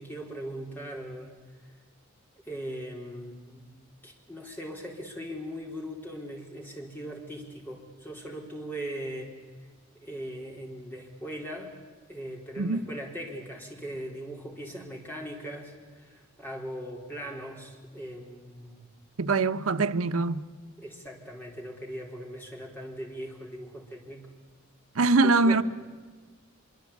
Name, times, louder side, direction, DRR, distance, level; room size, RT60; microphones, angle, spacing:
voice 1, 0.0-1.4 2.5-3.7 4.0-9.4 10.0-11.7 12.1-18.8 20.8-24.3 25.2-25.6, equal, 10° left, 3.9 m, -39 dB
voice 2, 19.2-20.4 24.9-25.6, right 3 dB, 90° right, 0.9 m, -23 dB
24.5 x 23.5 x 8.5 m
head